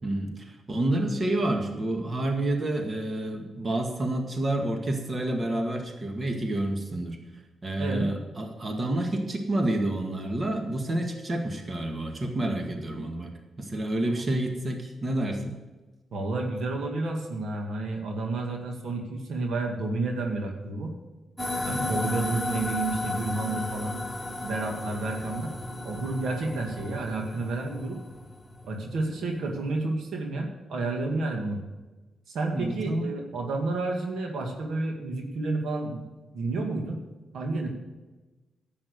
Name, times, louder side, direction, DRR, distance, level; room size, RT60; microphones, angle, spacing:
voice 1, 0.0-7.2 7.6-13.3 13.6-15.6 21.7-21.9 32.5-33.1, right 1 dB, 40° right, 3 dB, 1.9 m, -29 dB
voice 2, 16.1-20.9 21.6-24.0 24.4-25.5 25.8-28.0 28.6-31.6 32.3-36.0 36.3-37.0 37.3-37.7, right 2 dB, 75° right, 2 dB, 2.0 m, -30 dB
sound 1, 21.4-29.0, left 2 dB, 5° left, 3.4 m, -34 dB
10.5 x 8.6 x 6.7 m, 1.2 s
cardioid pair, 70°, 0 cm